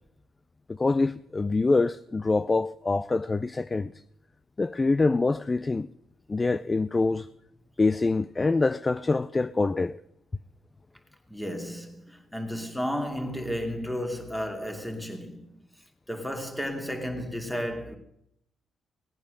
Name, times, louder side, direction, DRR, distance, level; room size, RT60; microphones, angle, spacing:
voice 1, 0.7-3.9 4.6-5.9 6.3-7.3 7.8-10.0, left 3 dB, 25° left, 0.5 m, -25 dB
voice 2, 11.3-15.6 16.1-18.0, equal, 5° left, 2.7 m, -33 dB
18.5 x 8.9 x 6.6 m
cardioid pair, 90°, 0 cm